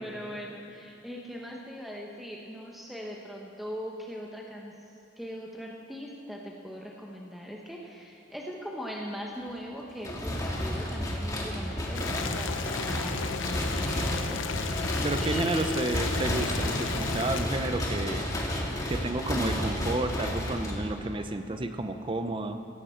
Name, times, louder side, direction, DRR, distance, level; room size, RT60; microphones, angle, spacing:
voice 1, 0.0-15.9 19.3-19.6, equal, ahead, -2 dB, 1.0 m, -40 dB
sound 1, 10.0-21.2, left 1 dB, 20° left, 1.9 m, -31 dB
Boiling, 11.9-17.5, left 5 dB, 90° left, 0.7 m, -34 dB
voice 2, 15.0-18.2 18.9-22.6, right 2 dB, 25° right, 8 dB, 0.6 m, -31 dB
17.0 x 15.5 x 4.5 m, 2.8 s
head